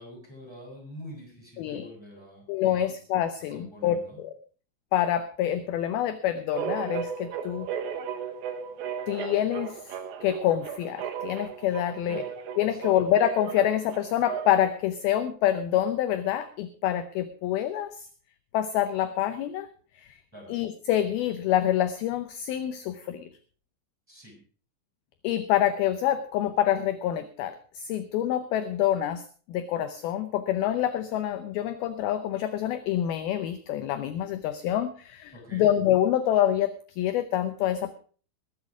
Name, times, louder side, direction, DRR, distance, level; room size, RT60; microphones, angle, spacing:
voice 1, 0.0-2.9 3.5-4.2 12.0-12.3 12.7-12.9 20.3-20.5 24.1-24.4 35.3-35.7, equal, 5° right, 0 dB, 6.7 m, -46 dB
voice 2, 1.6-1.9 2.5-4.3 4.9-7.7 9.1-12.2 12.6-18.1 18.5-19.7 20.0-20.2 20.5-23.2 25.2-29.2 29.5-36.7 37.0-37.9, left 11 dB, 80° left, 11 dB, 2.3 m, -26 dB
sound 1, 6.5-14.8, right 7 dB, 75° right, 3.6 m, -35 dB
21.5 x 8.2 x 4.9 m, 0.41 s
omnidirectional pair, 5.2 m